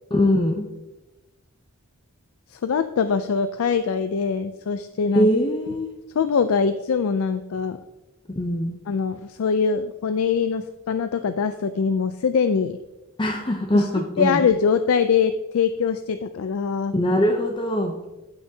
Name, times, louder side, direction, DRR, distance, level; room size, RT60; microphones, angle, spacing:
voice 1, 0.1-0.7 5.1-5.9 8.4-8.7 13.2-14.4 16.9-18.0, equal, 25° left, 3 dB, 0.6 m, -22 dB
voice 2, 2.5-5.3 6.1-7.8 8.9-12.8 13.7-13.9 14.2-16.9, left 6 dB, 80° left, 10 dB, 0.4 m, -23 dB
15.0 x 6.0 x 2.8 m, 1.1 s
head